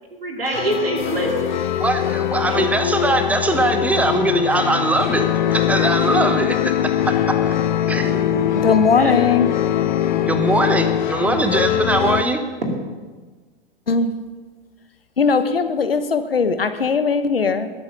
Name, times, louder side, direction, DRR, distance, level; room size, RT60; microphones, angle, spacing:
voice 1, 0.1-1.6 2.5-2.9 8.0-9.2 12.6-12.8, right 1 dB, 75° right, 1 dB, 2.5 m, -26 dB
sound 1, 0.5-12.2, left 11 dB, 50° left, 0.8 m, -22 dB
voice 2, 1.8-7.6 7.9-8.2 10.2-12.4, right 2 dB, 5° right, 8 dB, 0.9 m, -21 dB
voice 3, 8.5-9.5 13.9-14.1 15.2-17.7, left 5 dB, 75° left, 10 dB, 1.1 m, -19 dB
20.5 x 8.2 x 5.3 m, 1.4 s
figure-of-eight pair, 100°, 29 cm